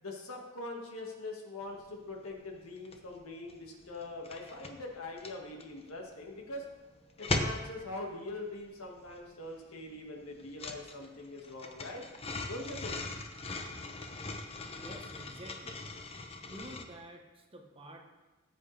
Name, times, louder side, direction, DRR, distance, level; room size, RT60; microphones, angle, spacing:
voice 1, 0.0-6.7 7.2-12.0 12.5-13.0, left 2 dB, 85° left, 0 dB, 1.8 m, -43 dB
sound 1, 1.7-3.2 3.4-16.8, left 2 dB, 30° left, 0.8 m, -40 dB
voice 2, 14.8-15.8 16.5-18.0, right 1 dB, 25° right, 2 dB, 1.1 m, -49 dB
14.5 x 7.8 x 3.4 m, 1.2 s
head